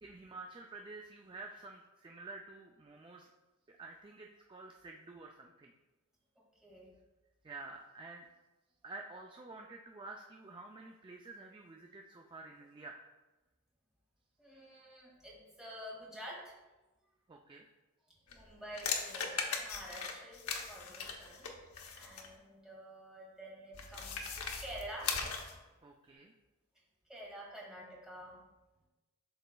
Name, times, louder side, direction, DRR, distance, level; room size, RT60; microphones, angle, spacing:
voice 1, 0.0-3.3 3.8-5.7 7.4-8.3 8.8-13.0 17.3-17.6 25.8-26.3, right 3 dB, 20° right, 2 dB, 0.4 m, -50 dB
voice 2, 6.4-6.9 14.4-16.5 18.3-21.5 21.9-25.2 27.1-28.4, right 1 dB, ahead, -6 dB, 2.0 m, -49 dB
sound 1, 18.3-22.3 23.7-25.6, left 5 dB, 70° left, 0.8 m, -39 dB
11.5 x 4.0 x 2.3 m, 1.1 s
head